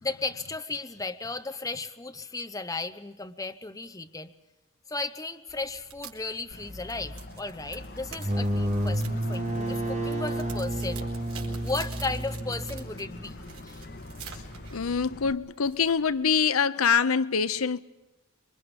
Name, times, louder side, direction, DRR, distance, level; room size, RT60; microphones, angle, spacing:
voice 1, 0.0-4.3 4.9-11.1 11.6-13.4 13.6-13.8, left 3 dB, 15° left, 0.9 m, -35 dB
sound 1, 5.5-16.3, right 7 dB, 90° right, 4.3 m, -49 dB
sound 2, 6.5-15.3, left 1 dB, 50° left, 1.9 m, -42 dB
sound 3, 8.1-13.6, right 1 dB, 35° right, 2.3 m, -31 dB
voice 2, 14.7-17.8, left 6 dB, 85° left, 0.7 m, -25 dB
27.0 x 23.5 x 5.3 m
head